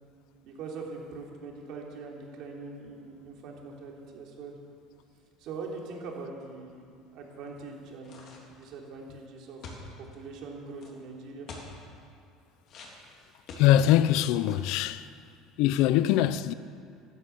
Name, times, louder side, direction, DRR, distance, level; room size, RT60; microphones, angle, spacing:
voice 1, 0.4-4.6 5.4-8.2 8.6-9.6 10.0-11.5, right 4 dB, 60° right, 3.5 m, -42 dB
sound 1, 8.0-8.7 9.6-10.2 10.8-10.9 11.5-11.7 12.7-14.0 14.4-14.7, left 4 dB, 50° left, 3.4 m, -46 dB
voice 2, 13.5-15.1 15.6-16.5, left 12 dB, 70° left, 0.6 m, -23 dB
13.0 x 13.0 x 8.5 m
cardioid pair, 130°, 0 cm